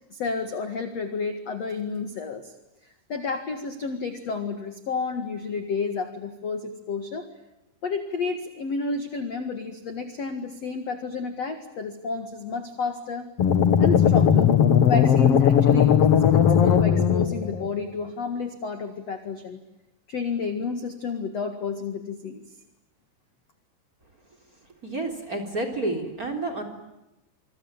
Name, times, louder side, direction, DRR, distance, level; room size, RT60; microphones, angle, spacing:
voice 1, 0.1-2.5 3.1-7.3 7.8-13.3 13.8-14.5 14.9-19.6 20.1-22.4, left 4 dB, 50° left, 8 dB, 2.0 m, -31 dB
sound 1, 13.4-17.7, left 8 dB, 75° left, 1.4 m, -18 dB
voice 2, 24.8-26.6, right 2 dB, 20° right, 7 dB, 3.4 m, -29 dB
27.0 x 24.5 x 8.8 m, 0.93 s
omnidirectional pair, 5.5 m